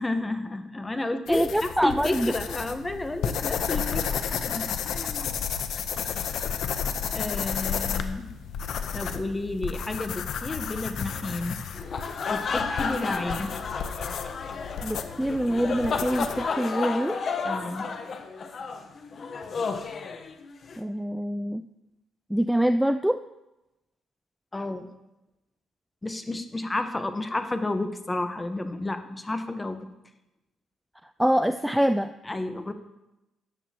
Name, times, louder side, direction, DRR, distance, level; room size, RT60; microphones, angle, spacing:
voice 1, 0.0-5.4 7.1-8.3 8.9-11.6 12.3-13.5 17.4-17.9 24.5-24.9 26.0-29.8 32.2-32.7, left 2 dB, 20° left, 8 dB, 1.0 m, -31 dB
sound 1, 1.3-16.5, left 7 dB, 75° left, 0.7 m, -32 dB
voice 2, 1.3-2.3 14.8-17.2 20.8-21.7 22.3-23.2 31.2-32.1, equal, 5° right, 10 dB, 0.3 m, -25 dB
sound 2, 11.7-20.8, left 5 dB, 50° left, 0.9 m, -32 dB
13.5 x 9.1 x 2.9 m, 0.95 s
cardioid pair, 90°, 0 cm